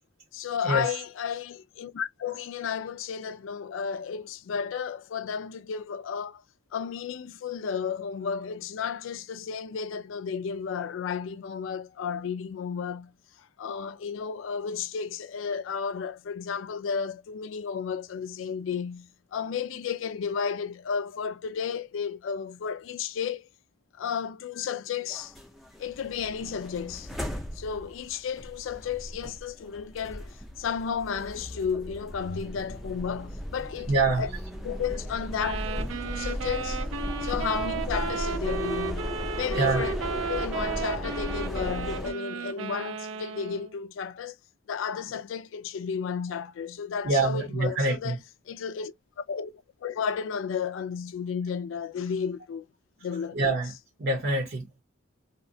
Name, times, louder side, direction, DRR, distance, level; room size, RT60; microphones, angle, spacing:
voice 1, 0.3-6.4 6.7-13.1 13.4-23.5 23.9-25.3 25.8-27.2 27.5-33.9 34.2-34.3 34.6-36.8 37.2-40.0 40.3-44.4 44.7-48.2 48.5-49.5 49.8-52.7 53.0-53.4, left 6 dB, 70° left, 0.3 m, -33 dB
sound 1, 25.1-42.1, equal, ahead, 0.5 m, -36 dB
voice 2, 33.9-34.2 39.5-39.9 47.0-48.2 53.3-53.7 54.0-54.8, right 2 dB, 50° right, 0.8 m, -25 dB
sound 2, 35.4-43.8, right 5 dB, 70° right, 0.4 m, -34 dB
2.7 x 2.2 x 2.6 m
head